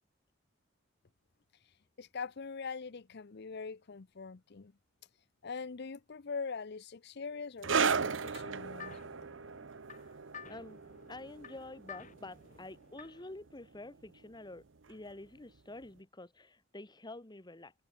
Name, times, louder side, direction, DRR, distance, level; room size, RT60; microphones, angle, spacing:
voice 1, 1.6-4.7 5.4-9.0, left 5 dB, 60° left, 0.7 m, -43 dB
sound 1, 7.6-14.6 14.9-15.1 15.9-16.0, right 5 dB, 70° right, 0.9 m, -36 dB
sound 2, 7.9-13.3, left 6 dB, 40° left, 2.1 m, -53 dB
voice 2, 10.5-10.8 11.1-17.7, left 2 dB, 20° left, 1.6 m, -48 dB
head